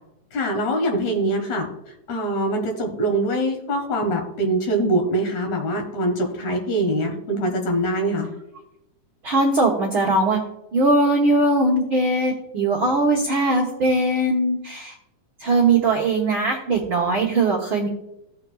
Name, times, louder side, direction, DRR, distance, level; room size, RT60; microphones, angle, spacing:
voice 1, 0.3-1.7 2.1-8.3, right 1 dB, 60° left, 3 dB, 2.7 m, -23 dB
voice 2, 9.2-10.4 10.7-14.9 15.4-17.9, right 2 dB, 60° right, -3 dB, 1.3 m, -20 dB
16.5 x 6.5 x 2.3 m, 0.87 s
omnidirectional pair, 4.0 m